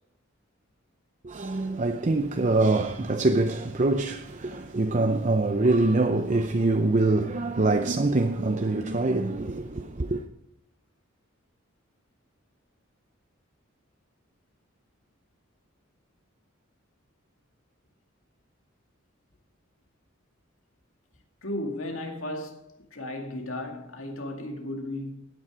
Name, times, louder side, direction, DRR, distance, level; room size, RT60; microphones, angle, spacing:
voice 1, 1.2-10.2, right 2 dB, 35° right, 0.6 m, -24 dB
voice 2, 21.4-25.3, left 1 dB, 75° left, 2.3 m, -35 dB
16.0 x 9.4 x 4.9 m
head